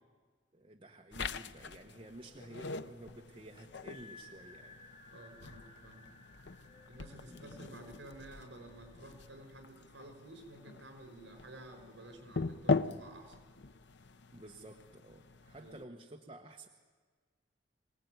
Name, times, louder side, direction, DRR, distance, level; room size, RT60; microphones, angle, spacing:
voice 1, 0.5-4.8 7.3-7.4 14.3-16.7, right 1 dB, 30° right, 2 dB, 1.2 m, -52 dB
sound 1, 1.1-15.8, left 3 dB, 65° left, 0.7 m, -41 dB
sound 2, 1.6-9.8, left 3 dB, 30° left, 5.4 m, -59 dB
voice 2, 5.1-6.1 6.9-13.4 15.6-15.7, right 1 dB, 70° right, 6 dB, 5.5 m, -52 dB
24.5 x 18.0 x 9.5 m, 1.5 s
head